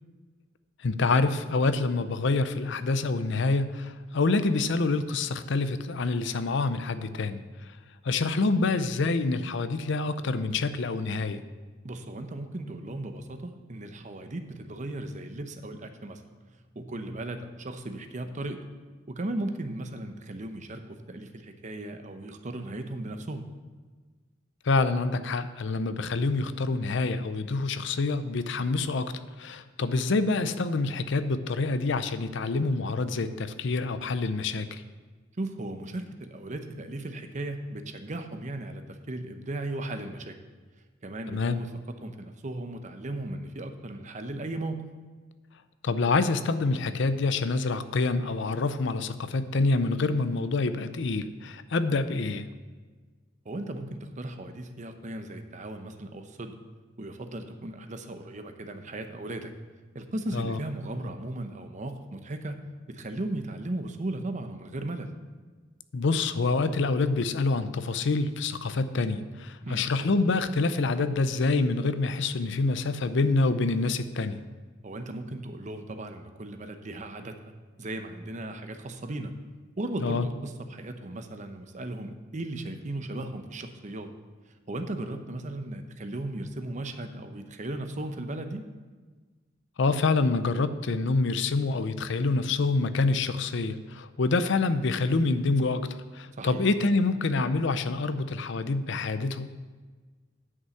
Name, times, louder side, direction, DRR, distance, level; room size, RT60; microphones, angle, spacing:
voice 1, 0.8-7.7 8.0-11.4 24.6-29.1 29.4-34.8 41.3-41.6 45.8-52.5 60.3-60.6 65.9-74.5 80.0-80.3 89.8-99.5, left 3 dB, 65° left, 12 dB, 0.6 m, -27 dB
voice 2, 11.8-16.2 16.7-18.6 19.1-23.4 35.4-40.3 41.0-41.7 42.0-44.8 53.4-56.5 57.0-59.5 59.9-62.6 62.9-65.1 69.6-69.8 74.8-77.3 77.8-79.3 79.8-84.1 84.7-88.6 96.4-96.6, right 1 dB, 40° right, 7 dB, 0.8 m, -36 dB
9.7 x 5.4 x 7.0 m, 1.4 s
head